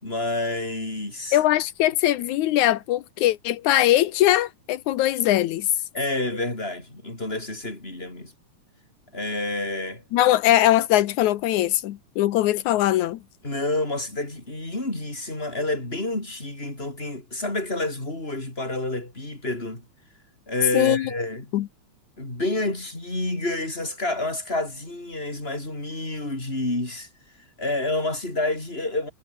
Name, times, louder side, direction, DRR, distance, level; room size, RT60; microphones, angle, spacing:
voice 1, 0.0-1.4 5.9-8.3 9.1-10.0 13.4-19.8 20.5-21.5 22.2-27.1 27.6-29.1, left 2 dB, 20° left, 6.2 m, -29 dB
voice 2, 1.3-5.7 10.1-13.2 20.7-21.1 21.5-21.7, left 14 dB, 85° left, 2.4 m, -21 dB
omnidirectional pair, 3.3 m